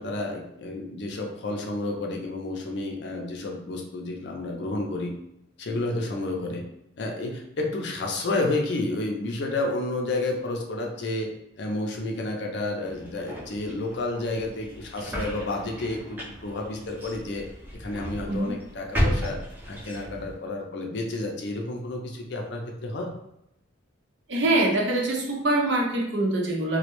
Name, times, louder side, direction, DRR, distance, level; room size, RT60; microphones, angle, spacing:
voice 1, 0.0-5.1 5.6-6.6 7.0-11.3 11.6-17.4 17.7-23.1, left 2 dB, 60° left, 1 dB, 0.4 m, -30 dB
sound 1, 12.8-20.3, equal, 10° right, 0.5 m, -33 dB
voice 2, 24.3-26.8, right 2 dB, 65° right, -1 dB, 0.6 m, -24 dB
2.2 x 2.0 x 3.0 m, 0.81 s
head